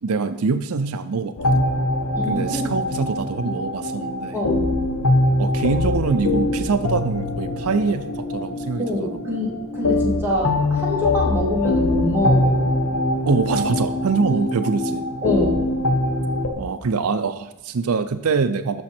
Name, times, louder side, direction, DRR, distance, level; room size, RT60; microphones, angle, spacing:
voice 1, 0.0-1.7 2.3-4.4 5.4-8.0 8.3-9.4 13.3-15.0 16.6-18.8, right 4 dB, 75° right, 10 dB, 0.5 m, -24 dB
sound 1, 1.4-16.5, left 2 dB, 75° left, 1.2 m, -23 dB
voice 2, 2.2-2.8 4.3-4.7 8.8-12.6 15.2-15.7, left 1 dB, 10° right, -4 dB, 2.4 m, -25 dB
12.5 x 6.2 x 4.3 m, 1.0 s
head